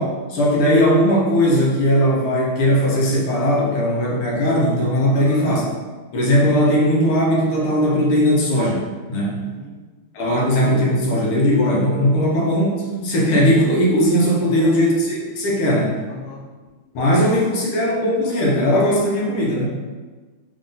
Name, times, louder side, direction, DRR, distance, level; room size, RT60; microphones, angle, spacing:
voice 1, 0.0-5.6 6.1-8.8 9.1-9.4 10.1-16.0 16.9-19.7, equal, 85° left, -3 dB, 1.8 m, -18 dB
voice 2, 5.1-5.5 9.4-9.8 10.3-10.5 14.4-14.8 16.1-16.4 16.9-17.3, left 4 dB, 65° left, -2 dB, 0.8 m, -36 dB
4.1 x 2.7 x 3.8 m, 1.3 s
omnidirectional pair, 2.4 m